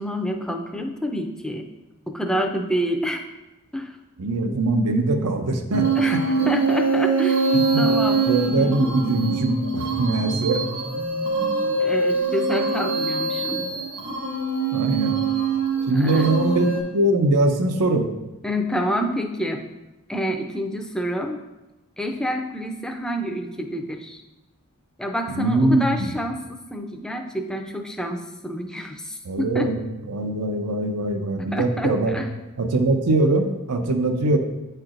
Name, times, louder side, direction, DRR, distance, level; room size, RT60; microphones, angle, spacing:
voice 1, 0.0-1.7 2.1-3.2 3.7-3.9 6.0-8.2 8.5-8.7 11.8-13.6 16.0-16.3 18.4-19.6 20.1-21.4 22.0-24.2 25.0-29.7 31.5-32.3, equal, 5° left, 3 dB, 0.4 m, -28 dB
voice 2, 4.2-6.5 7.5-7.9 8.3-10.6 14.7-15.2 15.9-16.7 16.9-18.1 25.3-26.1 29.2-29.8 30.1-32.2 32.6-34.4, right 2 dB, 85° right, 5 dB, 0.7 m, -22 dB
sound 1, 5.7-16.8, right 4 dB, 65° right, 1.8 m, -24 dB
8.6 x 4.5 x 2.5 m, 1.0 s
head